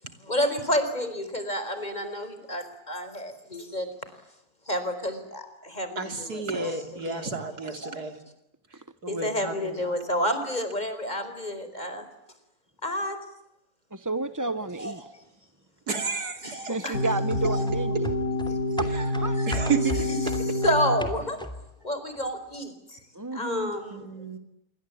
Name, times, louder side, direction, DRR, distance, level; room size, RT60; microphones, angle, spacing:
voice 1, 0.2-3.9 4.7-7.3 7.6-8.0 9.1-12.1 12.8-13.2 14.8-15.1 16.4-17.0 17.4-17.7 18.5-18.6 19.2-19.7 20.1-21.4 21.8-23.0 23.3-24.1, equal, 25° left, 10 dB, 4.8 m, -30 dB
voice 2, 6.0-8.1 9.0-9.5 15.9-16.6 19.5-20.0 23.9-24.4, right 5 dB, 85° right, 7 dB, 3.5 m, -31 dB
voice 3, 13.9-15.0 16.7-18.1 18.8-19.4 23.1-23.7, right 2 dB, 15° right, 11 dB, 0.8 m, -31 dB
sound 1, 16.9-21.0, left 1 dB, 85° left, 5.8 m, -27 dB
sound 2, 17.3-21.8 22.1-22.2, equal, 5° left, 2.9 m, -37 dB
27.5 x 23.5 x 8.6 m, 0.87 s
omnidirectional pair, 1.6 m